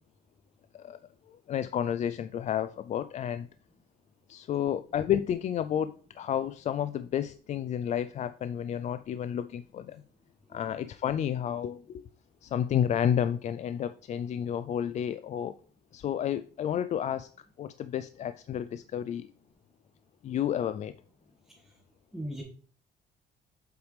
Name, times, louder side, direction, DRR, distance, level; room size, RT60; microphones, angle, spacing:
voice 1, 1.5-3.5 4.3-10.0 10.5-12.0 12.4-15.5 15.9-17.3 17.6-19.3 20.2-20.9, left 9 dB, 45° left, 12 dB, 0.4 m, -31 dB
voice 2, 21.5-21.8 22.1-22.4, equal, 5° right, -3 dB, 1.7 m, -40 dB
7.9 x 4.9 x 3.3 m, 0.43 s
cardioid pair, 110°, 17 cm